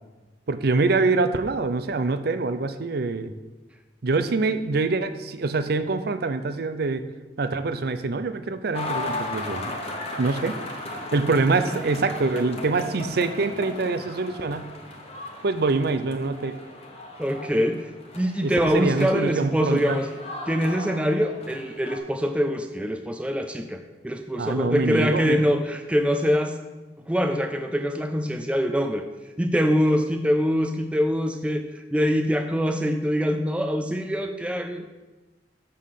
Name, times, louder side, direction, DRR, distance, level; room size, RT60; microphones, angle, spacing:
voice 1, 0.5-3.3 4.0-7.0 7.4-9.7 10.2-10.6 11.1-14.7 15.4-16.6 18.4-20.0 24.4-25.4, right 3 dB, 60° right, 11 dB, 0.6 m, -25 dB
sound 1, 8.7-22.0, left 2 dB, 35° left, 1.2 m, -36 dB
voice 2, 17.2-17.9 18.1-20.1 20.5-26.5 27.1-29.1 29.4-31.6 31.9-34.9, equal, 5° right, 5 dB, 0.4 m, -24 dB
7.6 x 5.6 x 6.6 m, 1.2 s
head